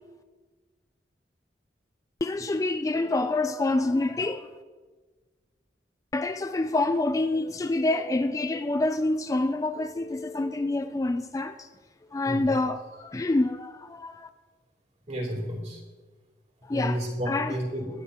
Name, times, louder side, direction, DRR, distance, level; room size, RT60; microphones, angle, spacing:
voice 1, 2.2-4.5 6.1-11.7 12.1-14.3 16.7-17.0 17.3-17.5, left 2 dB, 20° left, 0.3 m, -27 dB
voice 2, 15.1-15.8 16.7-17.9, equal, 40° right, 3.3 m, -31 dB
21.0 x 10.0 x 2.9 m
head